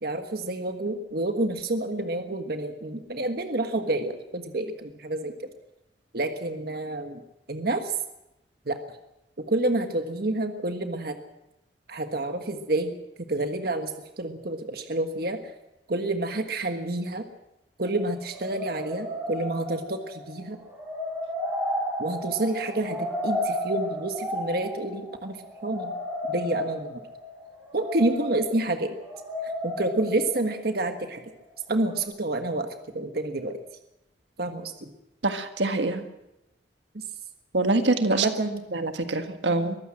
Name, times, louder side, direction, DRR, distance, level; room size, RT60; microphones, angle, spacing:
voice 1, 0.0-5.5 6.1-7.2 7.5-7.9 8.7-8.8 9.4-11.1 11.9-12.9 13.3-13.9 14.2-15.5 15.9-17.2 17.8-20.6 22.0-26.0 26.3-27.0 27.7-28.9 29.4-31.2 31.7-33.6 34.4-34.9 36.9-37.0 38.1-38.8, right 2 dB, 60° right, 6 dB, 1.5 m, -29 dB
sound 1, 17.8-31.4 31.8-32.0, equal, 10° right, 6.2 m, -33 dB
voice 2, 35.2-36.0 37.5-38.3 38.7-39.8, right 2 dB, 85° right, 7 dB, 1.7 m, -24 dB
23.0 x 15.0 x 7.6 m, 0.91 s
head